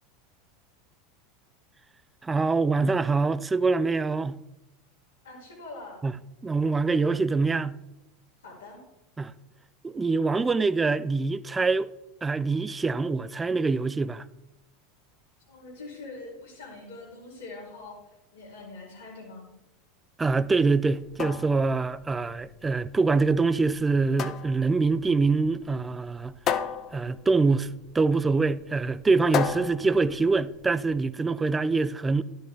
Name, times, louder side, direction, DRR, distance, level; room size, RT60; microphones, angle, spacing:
voice 1, 2.2-4.4 6.0-6.2 6.4-7.8 9.2-9.3 9.8-11.9 12.2-14.2 20.2-26.3 26.9-32.2, right 4 dB, 15° right, 0.4 m, -24 dB
voice 2, 5.2-6.1 8.4-8.8 15.5-17.9 18.3-19.5, left 3 dB, 85° left, 2.8 m, -43 dB
sound 1, 20.9-30.9, left 9 dB, 40° left, 0.7 m, -35 dB
12.0 x 7.8 x 3.4 m
figure-of-eight pair, 85°, 0 cm